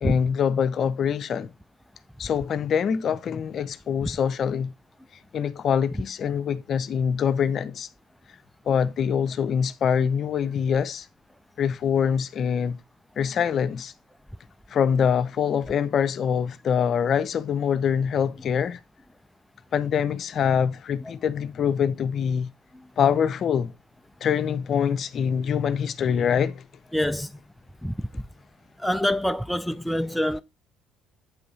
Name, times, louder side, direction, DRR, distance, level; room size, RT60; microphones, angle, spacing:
voice 1, 0.0-1.5 2.2-4.7 5.3-7.9 8.7-11.1 11.6-12.8 13.2-13.9 14.7-18.8 19.7-22.5 23.0-23.7 24.2-26.6, left 7 dB, 50° left, 0.7 m, -24 dB
voice 2, 26.9-27.3 27.8-27.9 28.8-30.4, equal, 5° left, 0.4 m, -25 dB
8.1 x 5.5 x 3.9 m
hypercardioid pair, 55°, 0 cm